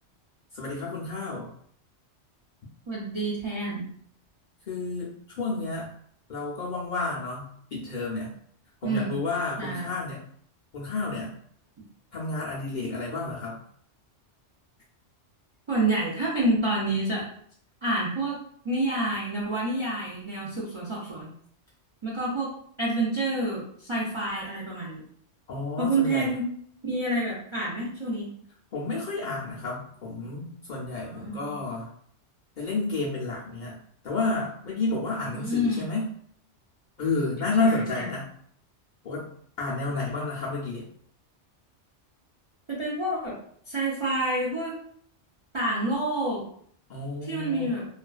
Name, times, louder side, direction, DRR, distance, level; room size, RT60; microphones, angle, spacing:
voice 1, 0.5-1.5 4.7-5.1 5.4-5.9 6.3-8.3 8.8-10.2 10.7-11.3 12.1-13.6 25.5-26.3 28.7-31.9 32.6-33.8 34.0-36.1 37.0-38.3 39.0-39.3 39.6-40.9 46.9-47.7, left 3 dB, 55° left, -5 dB, 0.5 m, -30 dB
voice 2, 2.9-3.8 8.8-9.2 9.6-9.9 15.7-17.2 17.8-18.4 18.6-21.3 22.0-22.5 22.8-25.0 25.8-26.5 26.8-28.3 31.0-31.6 35.3-35.9 37.6-38.1 42.7-43.4 43.7-44.8 45.5-46.4 47.2-47.9, right 1 dB, 50° right, -6 dB, 0.3 m, -28 dB
2.4 x 2.3 x 2.3 m, 0.62 s
omnidirectional pair, 1.2 m